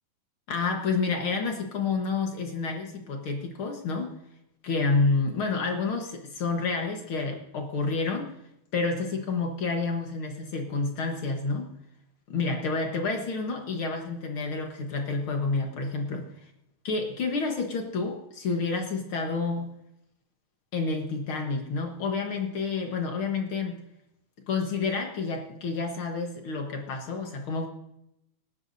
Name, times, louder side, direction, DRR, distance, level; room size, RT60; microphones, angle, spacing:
voice 1, 0.5-4.2 4.6-8.3 8.7-11.7 12.3-16.3 16.8-19.7 20.7-23.8 24.5-27.7, left 4 dB, 55° left, 3 dB, 1.9 m, -29 dB
20.0 x 11.0 x 2.7 m, 0.81 s
omnidirectional pair, 3.3 m